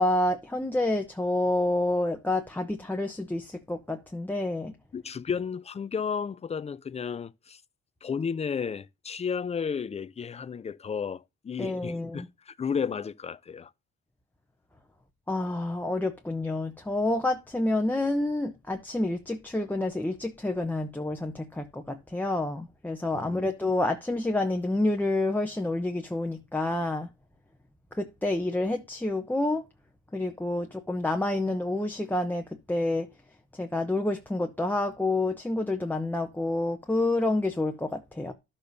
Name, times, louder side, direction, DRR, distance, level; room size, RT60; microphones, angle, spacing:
voice 1, 0.0-4.7 11.6-12.3 15.3-27.1 27.9-29.6 30.1-33.1 33.5-38.3, left 2 dB, 5° left, 0.8 m, -28 dB
voice 2, 4.9-7.6 8.0-13.7 23.1-23.5, left 6 dB, 20° left, 0.4 m, -33 dB
12.0 x 6.8 x 2.7 m
cardioid pair, 90°, 30 cm